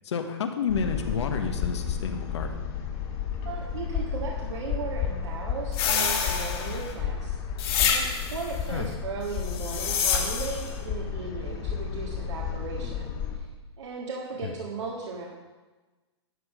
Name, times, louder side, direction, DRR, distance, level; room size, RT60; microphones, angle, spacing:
voice 1, 0.0-2.7 8.7-8.9 14.4-14.5, left 6 dB, 75° left, 5 dB, 1.3 m, -30 dB
sound 1, 0.7-13.4, left 8 dB, 40° left, 1.9 m, -32 dB
voice 2, 3.4-7.4 7.8-13.5 13.8-15.3, right 4 dB, 85° right, -4 dB, 1.9 m, -36 dB
sound 2, 5.7-6.9 7.6-8.5 9.4-10.7, left 7 dB, 55° left, 2.1 m, -27 dB
11.5 x 6.6 x 5.0 m, 1.2 s
hypercardioid pair, 150°, 15 cm